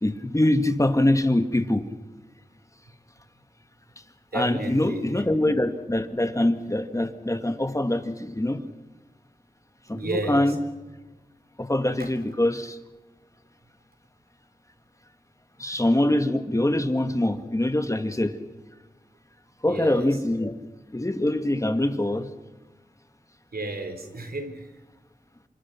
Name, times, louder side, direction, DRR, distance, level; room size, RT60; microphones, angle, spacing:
voice 1, 0.0-1.9 4.3-8.6 9.9-10.6 11.6-12.8 15.6-18.3 19.6-20.5 20.9-22.3, left 1 dB, 20° left, 8 dB, 2.2 m, -24 dB
voice 2, 4.3-5.5 10.0-10.6 12.0-12.1 19.7-20.1 23.5-24.7, right 2 dB, 80° right, 7 dB, 3.8 m, -32 dB
27.5 x 25.5 x 6.1 m, 1.2 s
wide cardioid pair, 50°, 16 cm